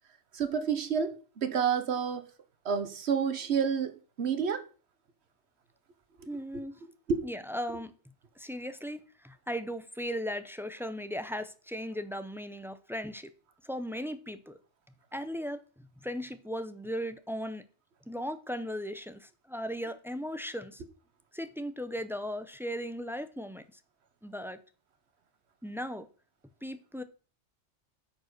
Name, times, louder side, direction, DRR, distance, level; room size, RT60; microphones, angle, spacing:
voice 1, 0.3-2.3 2.6-4.6 6.2-6.3 7.1-7.2, right 6 dB, 60° right, 1.4 m, -29 dB
voice 2, 6.3-6.7 7.2-7.9 8.4-13.3 13.6-14.6 15.1-17.6 18.1-20.8 21.3-23.6 24.2-24.6 25.6-26.1 26.6-27.0, equal, 5° right, 0.5 m, -37 dB
8.5 x 5.2 x 6.6 m
omnidirectional pair, 1.3 m